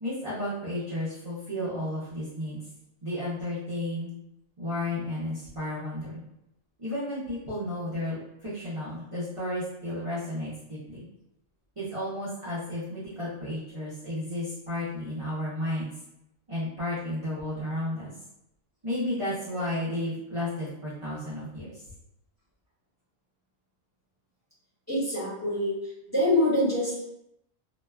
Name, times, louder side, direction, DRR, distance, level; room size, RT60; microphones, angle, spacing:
voice 1, 0.0-2.6 3.0-4.1 4.6-6.2 6.8-11.1 11.8-15.9 16.5-18.1 18.8-21.8, left 1 dB, 35° right, -10 dB, 0.5 m, -33 dB
voice 2, 24.9-25.8 26.1-27.0, left 1 dB, 15° left, -11 dB, 1.0 m, -25 dB
2.8 x 2.2 x 2.2 m, 0.85 s
omnidirectional pair, 1.4 m